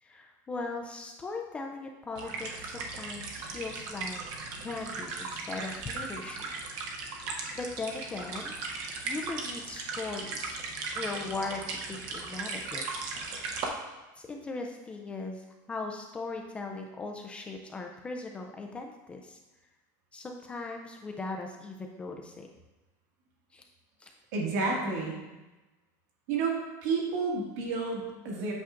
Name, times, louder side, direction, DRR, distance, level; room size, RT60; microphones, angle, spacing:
voice 1, 0.0-4.2 4.6-6.5 7.5-8.5 9.0-10.6 10.9-13.1 14.2-19.4 20.1-22.5 23.5-23.6 24.0-24.1, left 3 dB, 10° left, 2 dB, 0.3 m, -39 dB
sound 1, 2.2-13.7, right 4 dB, 45° right, 0.8 m, -37 dB
voice 2, 24.3-25.2 26.3-28.5, right 4 dB, 65° right, -2 dB, 1.7 m, -30 dB
8.2 x 5.7 x 2.5 m, 1.1 s
cardioid pair, 180°, 9 cm